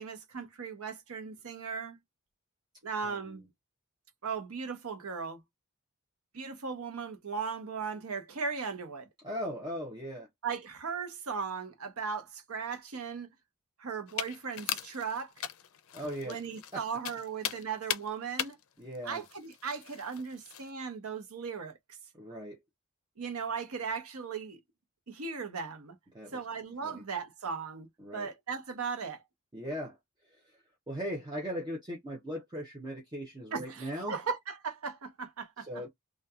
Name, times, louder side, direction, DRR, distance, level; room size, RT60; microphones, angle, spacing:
voice 1, 0.0-2.0 2.8-3.4 4.2-5.4 6.3-9.1 10.4-13.3 13.8-15.3 16.2-18.6 19.0-21.8 23.2-24.6 25.1-26.0 26.3-27.9 28.1-29.2 33.5-35.7, right 5 dB, 85° right, 0.8 m, -37 dB
voice 2, 3.0-3.5 9.2-10.3 15.9-16.4 16.7-16.9 18.8-19.2 22.1-22.6 26.1-26.4 26.8-27.0 28.0-28.3 29.5-30.0 30.2-34.2 35.6-35.9, equal, 20° right, 0.6 m, -39 dB
sound 1, 14.1-20.7, left 11 dB, 70° left, 0.4 m, -39 dB
2.7 x 2.3 x 2.3 m
head